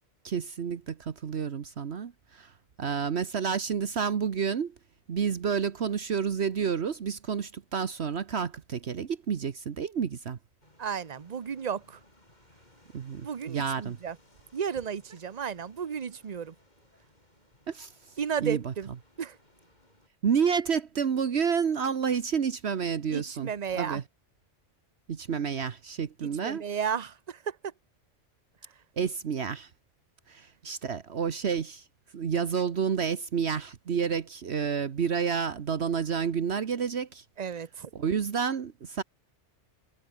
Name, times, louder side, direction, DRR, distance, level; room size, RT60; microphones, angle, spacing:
voice 1, 0.2-2.5 2.8-4.7 5.1-10.4 12.9-14.0 17.7-17.9 18.4-18.7 20.2-24.0 25.1-26.6 29.0-29.7 30.3-31.8 32.1-37.2 37.9-39.0, right 6 dB, 60° right, 1.3 m, -30 dB
sound 1, 10.6-20.1, left 1 dB, 35° left, 6.7 m, -62 dB
voice 2, 10.8-12.0 13.2-14.2 14.5-16.5 18.2-18.9 19.2-19.4 23.1-24.0 26.2-27.7 37.4-37.9, right 7 dB, 40° right, 0.9 m, -33 dB
omnidirectional pair, 1.2 m